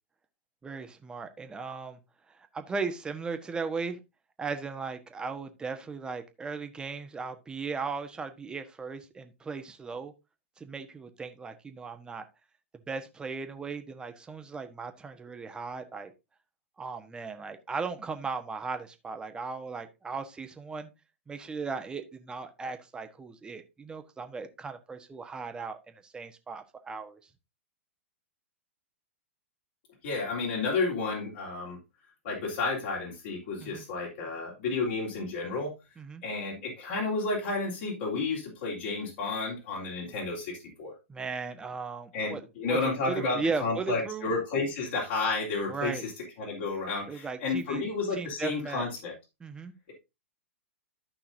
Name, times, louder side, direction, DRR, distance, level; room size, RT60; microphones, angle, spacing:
voice 1, 0.6-2.0 2.3-4.0 4.4-10.1 10.6-12.2 12.9-16.1 16.8-20.9 21.3-27.2 33.6-33.8 36.0-36.2 41.1-42.4 42.7-44.3 45.7-46.0 47.1-47.8 48.1-48.9 49.4-49.7, right 4 dB, 10° right, 7 dB, 1.3 m, -37 dB
voice 2, 30.0-31.8 32.2-35.7 36.2-40.9 42.1-46.1 46.4-49.1, left 3 dB, 50° left, -4 dB, 3.8 m, -31 dB
13.5 x 5.7 x 2.8 m, 0.25 s
figure-of-eight pair, 105°, 7 cm